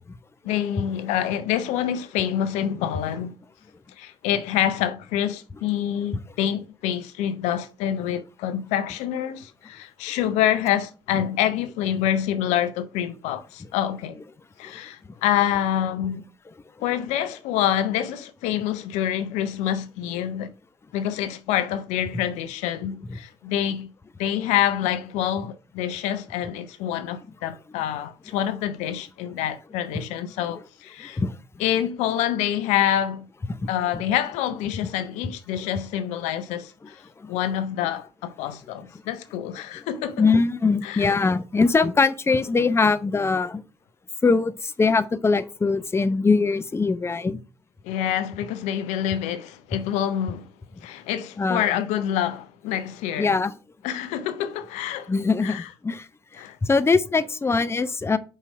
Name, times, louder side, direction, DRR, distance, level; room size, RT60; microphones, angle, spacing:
voice 1, 0.4-3.3 4.0-14.2 14.6-16.2 16.8-20.5 20.9-23.9 24.2-31.2 31.6-33.3 33.7-37.0 37.3-40.2 40.8-41.1 47.8-50.5 50.8-53.4 53.8-55.1 55.4-55.7 56.4-56.6, left 10 dB, 65° left, 0.5 m, -26 dB
voice 2, 31.0-31.4 33.9-34.0 35.2-35.3 37.2-37.4 39.7-39.9 40.2-43.6 44.2-47.4 51.4-51.7 53.2-53.5 55.1-58.2, left 4 dB, 20° left, 0.6 m, -22 dB
5.4 x 4.9 x 5.1 m
figure-of-eight pair, 45°, 13 cm